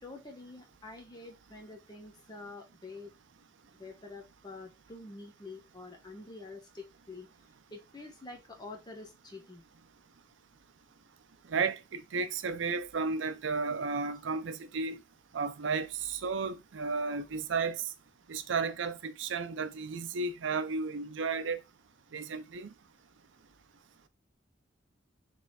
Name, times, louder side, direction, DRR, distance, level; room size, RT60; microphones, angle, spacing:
voice 1, 0.0-3.1 3.7-7.3 7.7-9.6, left 3 dB, 25° left, 1.0 m, -47 dB
voice 2, 11.5-15.0 15.3-17.8 18.3-21.6 22.1-22.7, right 4 dB, 90° right, 0.5 m, -33 dB
3.6 x 3.3 x 4.1 m
head